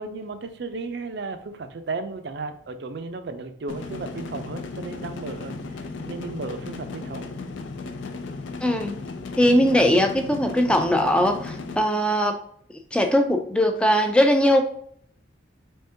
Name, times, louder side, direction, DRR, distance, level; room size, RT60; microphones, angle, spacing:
voice 1, 0.0-5.6 6.1-7.3, right 3 dB, 60° right, 8 dB, 0.4 m, -34 dB
sound 1, 3.7-11.8, left 3 dB, 80° left, 0.4 m, -35 dB
voice 2, 8.6-8.9 9.4-12.4 12.9-14.6, equal, 5° left, 5 dB, 0.3 m, -20 dB
3.6 x 3.3 x 2.7 m, 0.64 s
head